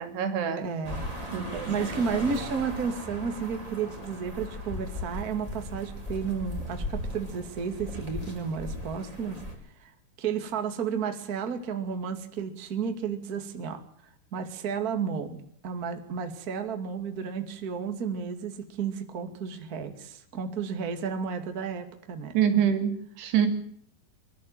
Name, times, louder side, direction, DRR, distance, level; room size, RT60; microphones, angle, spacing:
voice 1, 0.0-0.7 1.3-1.9 22.3-23.5, right 8 dB, 85° right, 7 dB, 4.5 m, -26 dB
voice 2, 0.6-1.4 1.7-9.4 9.8-9.9 10.2-13.8 14.3-22.4, right 6 dB, 30° right, 6 dB, 2.0 m, -32 dB
sound 1, 0.8-9.5, left 1 dB, 10° right, 4.7 m, -37 dB
24.0 x 12.5 x 9.2 m, 0.65 s
omnidirectional pair, 4.7 m